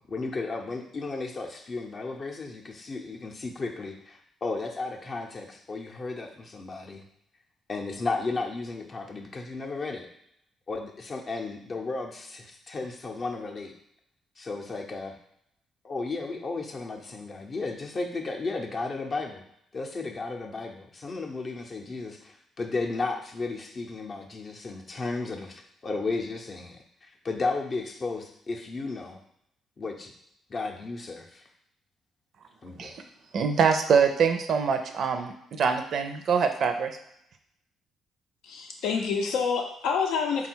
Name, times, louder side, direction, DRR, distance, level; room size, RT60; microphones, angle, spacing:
voice 1, 0.1-7.0 7.7-10.1 10.7-13.7 14.4-15.2 15.8-19.4 19.7-29.2 29.8-30.1 30.5-31.4 32.6-32.9, left 3 dB, 40° left, 2 dB, 0.6 m, -34 dB
voice 2, 33.3-37.0, right 6 dB, 60° right, 6 dB, 0.4 m, -24 dB
voice 3, 38.4-40.5, left 5 dB, 90° left, 2 dB, 0.6 m, -27 dB
3.5 x 2.3 x 4.4 m, 0.74 s
cardioid pair, 90°, 0 cm